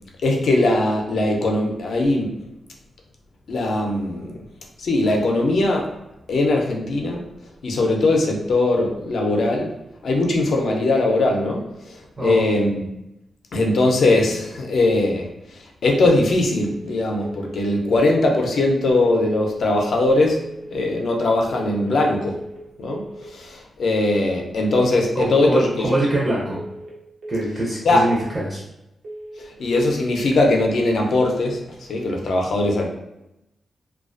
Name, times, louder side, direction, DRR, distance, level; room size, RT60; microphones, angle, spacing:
voice 1, 0.2-2.4 3.5-4.4 4.8-5.9 6.3-7.2 7.6-9.7 10.0-12.8 13.5-15.3 15.5-20.4 20.7-22.4 22.8-25.9 27.8-28.1 29.6-32.9, left 2 dB, 65° left, 1 dB, 0.4 m, -20 dB
sound 1, 16.5-16.9 17.2-17.6 17.9-18.3 19.0-19.4 19.7-20.1 20.4-20.8 21.5-21.9 22.2-22.6 22.9-23.3 24.0-24.4 24.7-25.1 25.4-25.8 26.5-26.9 27.2-27.6 27.9-28.3 29.0-29.4 29.7-30.1 30.4-30.8, right 1 dB, 75° right, 0.6 m, -37 dB
voice 2, 25.2-26.6 27.3-28.6, right 1 dB, 25° right, -5 dB, 0.5 m, -23 dB
2.4 x 2.2 x 2.4 m, 0.89 s
wide cardioid pair, 150°, 0 cm